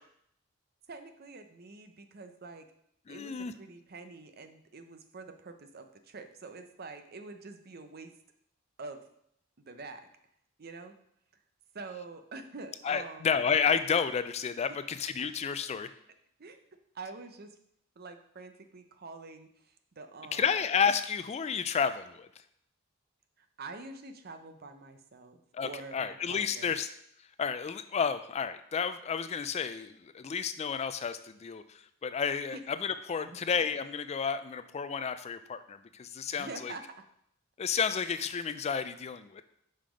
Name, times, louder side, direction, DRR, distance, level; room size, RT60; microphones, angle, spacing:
voice 1, 0.9-2.7 3.1-8.1 8.8-9.0 9.6-10.1 10.6-11.0 11.7-13.3 16.4-16.6 16.9-17.6 18.0-20.5 23.4-25.4 25.6-26.8 32.5-32.6 33.2-33.4 36.3-37.0, right 3 dB, 50° right, 8 dB, 0.7 m, -46 dB
voice 2, 3.1-3.5 12.8-15.9 20.3-22.3 25.5-26.9 27.4-36.7 37.6-39.4, left 6 dB, 30° left, 11 dB, 0.3 m, -31 dB
5.7 x 5.1 x 5.0 m, 0.71 s
head